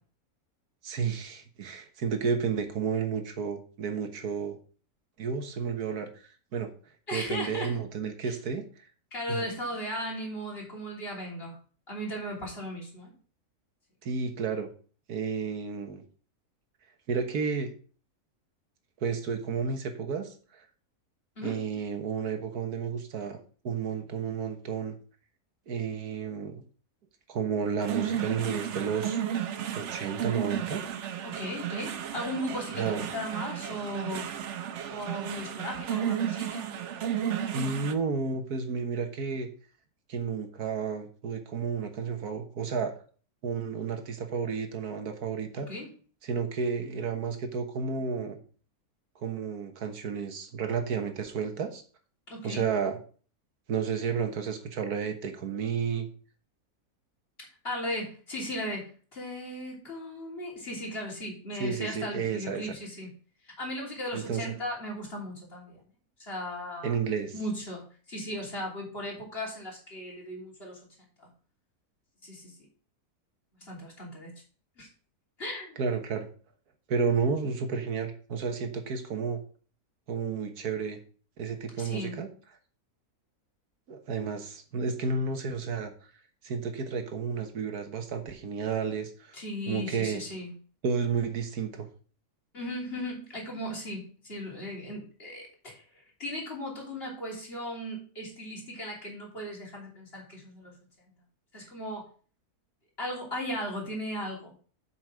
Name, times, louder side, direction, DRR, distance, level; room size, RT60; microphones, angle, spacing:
voice 1, 0.8-4.6 5.2-6.1 6.5-6.7 7.1-8.6 9.3-9.5 14.0-14.7 15.1-16.0 17.1-17.7 19.0-20.7 21.4-23.4 23.6-25.0 25.7-26.6 27.3-29.2 29.8-30.8 32.8-33.0 37.5-39.5 40.1-43.0 43.4-45.7 46.2-48.4 49.2-51.8 52.4-53.0 53.7-56.1 61.6-62.6 64.1-64.5 66.8-67.3 75.8-76.3 76.9-79.4 80.1-81.0 81.4-82.3 83.9-85.9 86.4-89.4 89.7-90.2 90.8-91.9, right 5 dB, 80° right, 6 dB, 1.8 m, -31 dB
voice 2, 7.1-7.8 8.2-8.4 9.1-11.6 11.9-13.1 21.4-21.6 31.2-34.3 34.9-36.7 45.6-45.9 52.3-52.6 57.6-63.1 63.6-65.8 66.2-67.0 67.3-70.8 71.2-71.3 72.2-72.6 73.6-74.3 74.8-74.9 75.4-75.8 81.8-82.1 89.3-90.5 92.5-100.7 101.5-102.1 103.0-104.5, equal, 40° left, -3 dB, 3.5 m, -37 dB
sound 1, 27.8-37.9, right 9 dB, 60° right, 0.9 m, -33 dB
7.8 x 6.2 x 5.1 m, 0.41 s
omnidirectional pair, 1.6 m